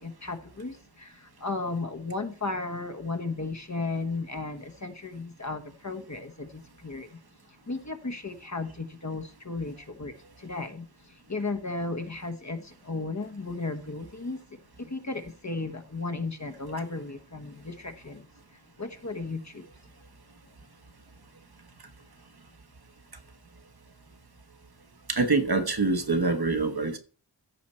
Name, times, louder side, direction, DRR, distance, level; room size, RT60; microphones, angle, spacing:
voice 1, 0.0-7.2 7.7-19.7, left 3 dB, 40° left, 1.2 m, -35 dB
voice 2, 25.1-27.0, right 3 dB, 60° right, 1.2 m, -25 dB
14.5 x 5.0 x 4.3 m
wide cardioid pair, 60°, 43 cm